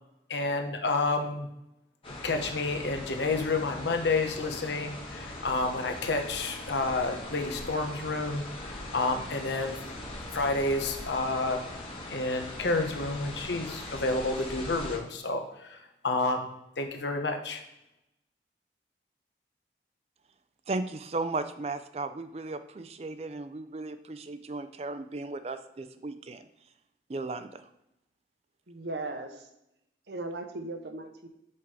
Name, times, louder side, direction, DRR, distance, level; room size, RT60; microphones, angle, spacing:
voice 1, 0.3-1.5 2.1-9.8 10.3-11.6 12.1-15.8 16.0-16.5 16.8-17.6, left 3 dB, 85° left, 4 dB, 1.0 m, -30 dB
sound 1, 2.0-15.0, left 1 dB, 30° left, 1.3 m, -41 dB
voice 2, 20.7-26.4 27.1-27.6, right 3 dB, 35° right, 11 dB, 0.4 m, -35 dB
voice 3, 28.7-29.5 30.1-31.3, right 2 dB, 75° right, 6 dB, 0.8 m, -37 dB
5.9 x 4.7 x 4.8 m, 0.84 s
head